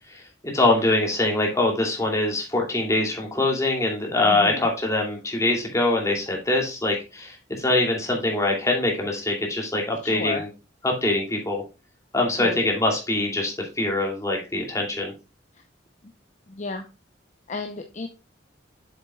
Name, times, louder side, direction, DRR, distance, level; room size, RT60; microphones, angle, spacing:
voice 1, 0.5-10.5 10.8-11.6 12.1-15.1, left 2 dB, 15° left, 0 dB, 2.7 m, -23 dB
voice 2, 4.3-4.7 10.0-10.4 12.4-12.6 15.5-15.6 16.5-16.9 17.5-18.1, left 3 dB, 40° left, 5 dB, 0.8 m, -33 dB
7.9 x 7.4 x 2.3 m, 0.29 s
head